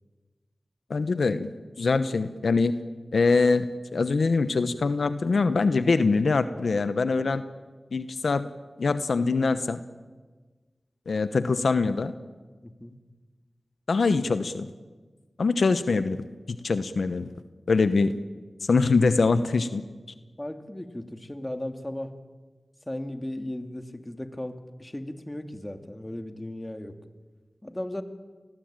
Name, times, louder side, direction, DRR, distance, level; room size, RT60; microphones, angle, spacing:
voice 1, 0.9-1.5 1.8-2.7 3.1-7.4 7.9-8.5 8.8-9.8 11.1-12.1 13.9-14.7 15.4-17.3 17.7-18.1 18.6-19.8, left 4 dB, 80° left, 11 dB, 1.0 m, -23 dB
voice 2, 12.6-13.0 20.4-22.2 22.9-26.9 27.6-28.0, left 1 dB, 20° left, 7 dB, 2.8 m, -36 dB
29.5 x 20.5 x 9.0 m, 1.3 s
cardioid pair, 40°, 0 cm